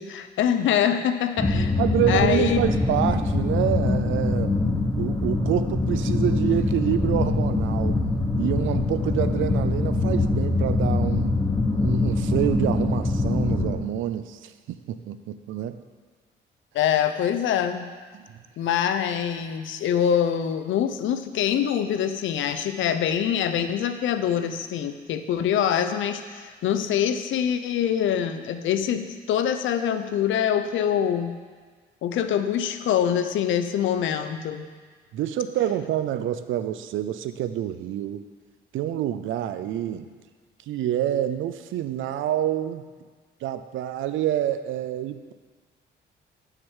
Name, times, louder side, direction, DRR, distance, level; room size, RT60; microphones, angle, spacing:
voice 1, 0.0-2.6 16.7-17.9 18.6-31.4 32.0-34.7, left 9 dB, 75° left, 9 dB, 0.7 m, -24 dB
sound 1, 1.4-13.7, left 2 dB, 15° left, 1.6 m, -23 dB
voice 2, 1.8-4.6 5.0-8.0 8.4-11.4 11.8-15.8 18.1-18.3 35.1-38.2 38.7-40.1 40.7-42.8 43.4-45.3, right 11 dB, 80° right, 11 dB, 0.6 m, -27 dB
7.3 x 6.7 x 7.3 m, 1.6 s
cardioid pair, 90°, 20 cm